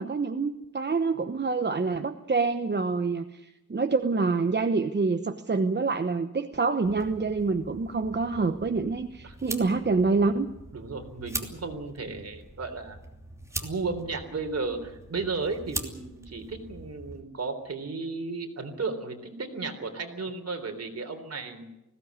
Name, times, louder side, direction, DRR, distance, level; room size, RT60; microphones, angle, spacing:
voice 1, 0.0-10.5, right 4 dB, 35° right, 7 dB, 1.0 m, -26 dB
sound 1, 6.8-17.2, right 1 dB, 10° right, 2.9 m, -42 dB
voice 2, 10.7-13.0 13.6-21.7, right 4 dB, 55° right, 5 dB, 3.7 m, -34 dB
20.5 x 17.0 x 9.6 m, 0.97 s
wide cardioid pair, 135°, 31 cm